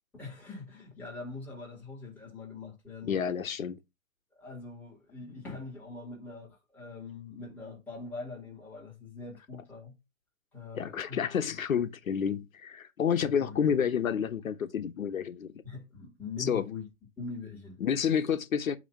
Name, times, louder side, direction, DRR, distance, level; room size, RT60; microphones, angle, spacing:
voice 1, 0.1-3.2 4.4-10.0 10.5-11.2 13.2-13.6 15.6-16.9 17.2-17.8, left 4 dB, 5° left, 2.2 m, -43 dB
voice 2, 3.0-3.8 10.7-15.5 16.4-16.7 17.8-18.8, left 7 dB, 80° left, 1.0 m, -29 dB
8.5 x 3.0 x 5.6 m
hypercardioid pair, 165°, 40 cm